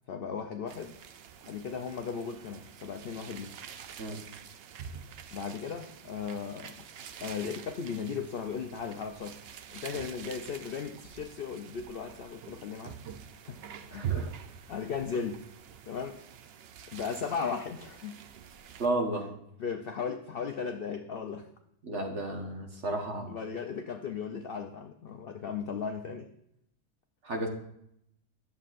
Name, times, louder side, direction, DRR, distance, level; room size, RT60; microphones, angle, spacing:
voice 1, 0.1-0.9 1.5-3.5 5.3-6.8 7.2-9.4 9.7-13.0 13.5-13.6 13.9-14.2 14.7-15.4 15.9-16.2 16.9-18.2 19.6-21.5 23.3-26.3, left 6 dB, 70° left, 5 dB, 0.5 m, -36 dB
sound 1, 0.7-18.9, right 8 dB, 70° right, 0.5 m, -45 dB
voice 2, 13.9-14.3 18.8-19.3 21.8-23.3 27.2-27.5, right 1 dB, 50° right, 2 dB, 1.4 m, -32 dB
11.0 x 7.0 x 2.5 m, 0.75 s
omnidirectional pair, 1.6 m